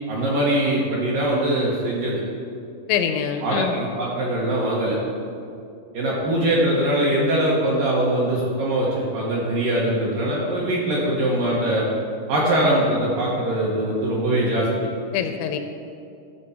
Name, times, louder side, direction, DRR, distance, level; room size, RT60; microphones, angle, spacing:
voice 1, 0.1-2.2 3.4-5.0 5.9-11.9 12.3-14.7, right 1 dB, 65° right, -5 dB, 2.3 m, -22 dB
voice 2, 2.9-3.8 15.1-15.6, left 8 dB, 85° left, 7 dB, 2.7 m, -24 dB
13.5 x 6.9 x 4.3 m, 2.5 s
omnidirectional pair, 5.3 m